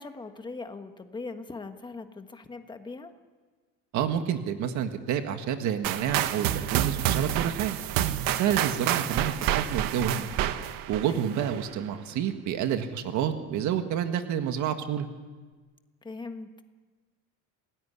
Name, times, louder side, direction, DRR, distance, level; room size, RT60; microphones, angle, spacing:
voice 1, 0.0-3.1 11.0-11.3 16.0-16.6, left 3 dB, 15° left, 7 dB, 1.3 m, -40 dB
voice 2, 3.9-7.8 8.4-10.3 10.9-15.1, right 9 dB, 55° right, 7 dB, 1.8 m, -29 dB
sound 1, 5.8-11.7, right 12 dB, 85° right, 1.5 m, -28 dB
27.5 x 18.5 x 9.9 m, 1.4 s
cardioid pair, 175°, 34 cm